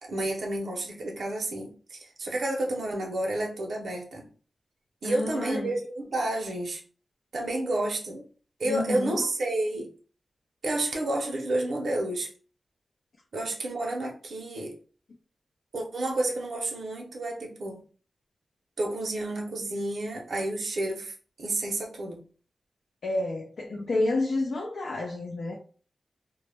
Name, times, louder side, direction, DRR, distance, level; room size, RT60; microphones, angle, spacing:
voice 1, 0.0-4.3 5.0-6.8 7.3-8.3 8.6-9.9 10.6-12.3 13.3-14.8 15.7-17.8 18.8-22.2 23.7-23.9, right 1 dB, 60° right, 0.5 m, -30 dB
voice 2, 5.0-5.7 8.6-9.3 23.0-25.5, left 2 dB, 75° left, 0.4 m, -29 dB
2.0 x 2.0 x 3.2 m
wide cardioid pair, 175°, 0 cm